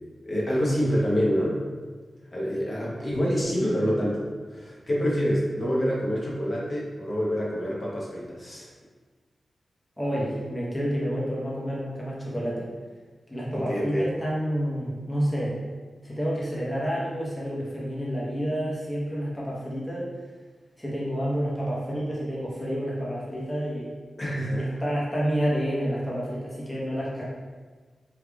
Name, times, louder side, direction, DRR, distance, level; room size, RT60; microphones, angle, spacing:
voice 1, 0.2-1.7 2.3-8.7 13.5-14.1 24.2-24.7, equal, 40° left, -6 dB, 0.9 m, -26 dB
voice 2, 10.0-12.7 13.3-15.6 16.0-20.1 20.8-23.9 24.5-27.2, equal, 15° left, -6 dB, 0.9 m, -29 dB
3.3 x 2.3 x 3.4 m, 1.4 s
cardioid pair, 70°, 0 cm